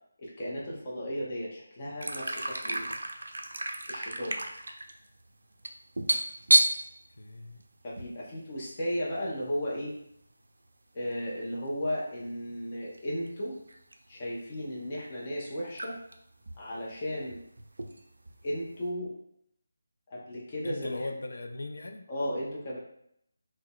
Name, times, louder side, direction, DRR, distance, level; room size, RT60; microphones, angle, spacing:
voice 1, 0.2-2.8 3.9-4.4 7.8-9.9 10.9-13.6 14.1-15.9 16.6-17.4 18.4-19.1 20.1-21.1 22.1-22.8, equal, 30° left, -6 dB, 0.6 m, -35 dB
sound 1, 2.0-8.2 8.4-8.6 8.9-9.3 10.2-10.3 11.7-11.9 12.9-13.0 13.2-14.1 14.5-14.6 15.4-15.5 15.7-16.1 16.4-18.6, right 2 dB, 70° right, 0.3 m, -30 dB
voice 2, 7.2-7.6 20.6-22.1, left 2 dB, 70° left, 5 dB, 0.4 m, -38 dB
3.7 x 2.1 x 2.2 m, 0.72 s
figure-of-eight pair, 160°, 0 cm